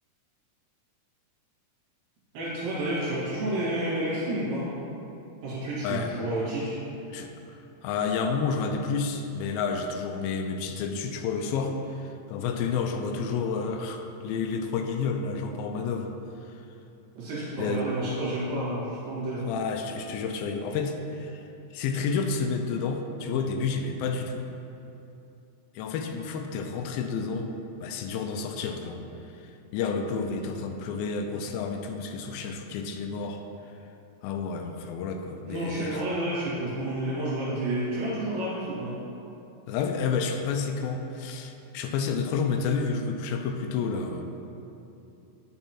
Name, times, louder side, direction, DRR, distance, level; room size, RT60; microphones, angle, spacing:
voice 1, 2.3-4.7 5.4-6.8 17.2-19.5 35.4-39.0, right 1 dB, 75° right, -9 dB, 3.7 m, -30 dB
voice 2, 7.8-16.1 17.6-17.9 19.5-21.5 21.7-24.5 25.8-29.0 29.7-33.4 34.2-36.0 39.7-44.2, left 5 dB, 90° left, 5 dB, 2.4 m, -30 dB
8.7 x 7.2 x 2.9 m, 2.8 s
omnidirectional pair, 4.1 m